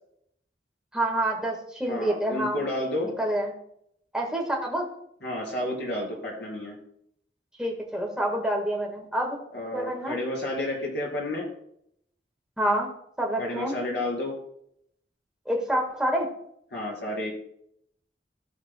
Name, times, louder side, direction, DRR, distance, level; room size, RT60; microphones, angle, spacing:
voice 1, 0.9-2.6 3.0-3.5 4.1-4.9 7.6-9.4 9.7-10.2 12.6-12.9 13.2-13.7 15.4-16.3, right 1 dB, 5° right, -1 dB, 1.5 m, -27 dB
voice 2, 1.9-3.1 5.2-6.8 9.5-11.5 13.4-14.4 16.7-17.3, left 1 dB, 75° left, -2 dB, 3.5 m, -31 dB
16.5 x 6.6 x 2.2 m, 0.72 s
head